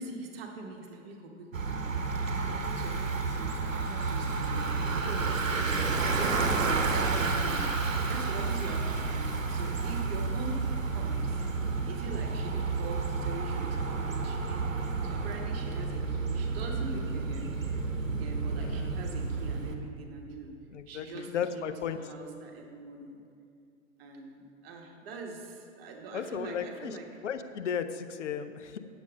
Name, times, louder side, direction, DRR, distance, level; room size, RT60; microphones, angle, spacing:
voice 1, 0.0-5.7 6.2-11.4 11.8-17.6 18.2-20.6 20.9-23.2 24.0-27.1, right 3 dB, 50° right, 2 dB, 1.4 m, -43 dB
Bicycle, 1.5-19.8, right 4 dB, 85° right, 1.0 m, -31 dB
voice 2, 18.6-18.9 20.7-22.0 26.1-26.9 27.2-28.8, left 8 dB, 70° left, 10 dB, 0.7 m, -35 dB
8.9 x 7.1 x 5.2 m, 2.4 s
figure-of-eight pair, 105°, 38 cm